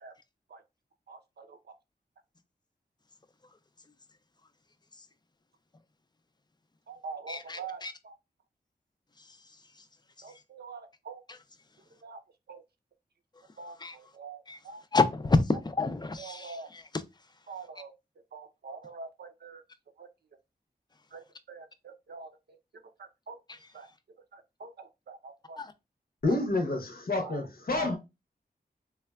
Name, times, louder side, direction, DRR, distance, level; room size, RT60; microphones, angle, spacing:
voice 1, 1.1-1.6 6.9-8.1 10.2-11.2 12.0-12.2 12.5-12.6 13.6-14.8 16.2-16.7 17.5-17.9 18.3-19.6 20.0-20.1 21.1-21.2 21.5-22.3 23.3-23.4 23.7-23.9 24.3-25.6 27.2-27.4 27.7-27.9, right 4 dB, 75° right, 0.5 m, -44 dB
voice 2, 7.3-7.9 11.3-11.4 13.8-14.0 14.5-14.6 14.9-17.0 23.5-23.6 25.6-25.7, left 3 dB, 25° left, 0.4 m, -29 dB
voice 3, 26.2-28.0, left 2 dB, 60° left, 0.7 m, -29 dB
3.3 x 2.2 x 2.2 m
wide cardioid pair, 70°, 17 cm